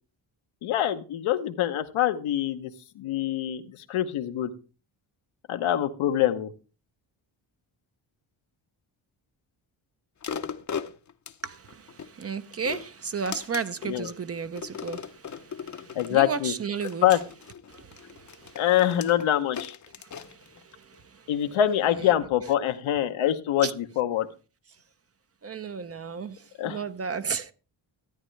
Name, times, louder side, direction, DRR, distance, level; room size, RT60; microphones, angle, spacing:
voice 1, 0.6-2.7 3.0-4.5 5.5-6.5 13.9-14.1 15.9-16.5 17.0-17.2 18.5-19.8 21.3-24.3 26.6-26.8, left 11 dB, 80° left, 1.0 m, -25 dB
sound 1, 10.2-12.1 12.5-13.9 14.6-16.2 16.8-21.0 21.5-21.6, left 7 dB, 35° left, 0.7 m, -38 dB
voice 2, 11.4-17.2 17.7-18.6 20.0-21.3 23.6-23.7 25.4-27.5, right 5 dB, 30° right, 0.6 m, -34 dB
14.0 x 8.9 x 3.2 m
cardioid pair, 80°, 48 cm